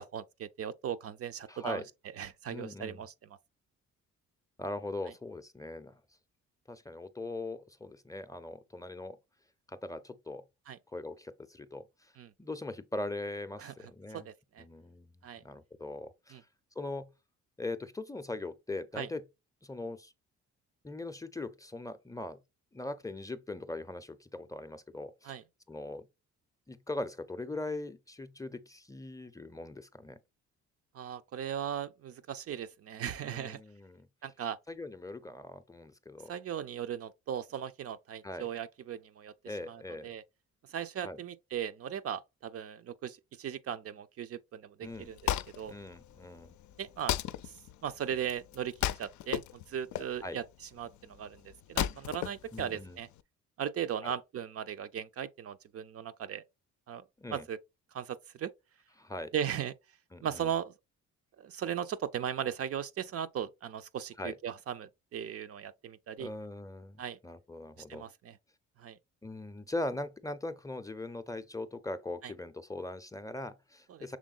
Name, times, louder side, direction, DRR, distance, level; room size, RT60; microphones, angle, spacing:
voice 1, 0.0-1.8 2.2-3.1 10.7-10.8 12.2-12.3 13.6-13.7 14.1-14.6 15.2-15.4 16.3-16.4 19.0-19.1 25.2-25.4 30.9-33.6 34.2-34.6 36.3-39.3 39.7-40.2 40.7-45.2 45.5-45.7 46.8-47.2 47.4-47.5 47.8-48.7 49.0-50.4 50.8-53.1 53.6-56.4 56.9-57.0 57.3-57.6 57.9-58.5 59.3-59.7 60.2-60.7 61.4-66.3 67.0-67.2 67.8-68.4 68.8-69.0 72.2-72.3 73.9-74.2, right 9 dB, 50° right, 0.5 m, -38 dB
voice 2, 1.5-1.8 2.5-3.0 4.6-6.0 6.7-9.2 9.7-10.4 10.9-12.1 12.4-14.3 14.6-16.4 16.8-17.1 17.6-19.2 19.6-20.1 20.8-22.4 22.7-25.3 25.7-26.1 26.7-30.2 33.2-34.1 34.7-36.3 38.2-38.5 39.5-40.1 41.0-41.2 44.8-45.1 45.7-46.6 50.2-50.4 52.5-53.0 54.0-54.1 57.2-57.4 59.0-59.3 60.1-60.5 64.2-64.3 66.2-68.0 69.2-74.2, left 2 dB, 10° left, 0.5 m, -40 dB
Wood, 44.8-53.2, left 12 dB, 75° left, 0.5 m, -37 dB
6.2 x 3.5 x 2.4 m
cardioid pair, 90°, 30 cm